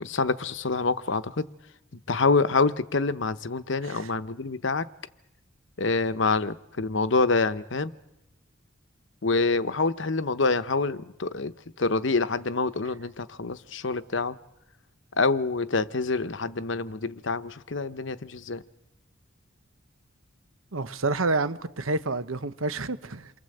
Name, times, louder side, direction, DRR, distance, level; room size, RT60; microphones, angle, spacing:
voice 1, 0.0-1.5 2.1-4.9 5.8-7.9 9.2-11.5 11.8-14.4 15.2-18.6, left 3 dB, 65° left, 0.9 m, -26 dB
voice 2, 20.7-23.3, right 3 dB, 90° right, 1.1 m, -29 dB
28.5 x 23.0 x 7.9 m
head